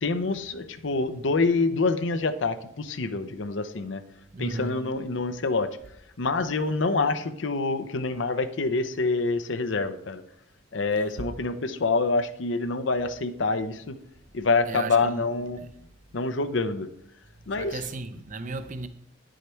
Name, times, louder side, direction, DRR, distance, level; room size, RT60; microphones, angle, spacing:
voice 1, 0.0-4.0 4.4-5.7 6.2-10.2 10.7-14.0 14.3-15.6 16.1-16.9 17.5-17.8, left 3 dB, 65° left, 0.7 m, -26 dB
voice 2, 4.3-4.8 14.7-15.3 15.6-15.7 16.1-16.2 17.5-18.9, right 3 dB, 40° right, 0.6 m, -35 dB
9.8 x 6.5 x 4.4 m
head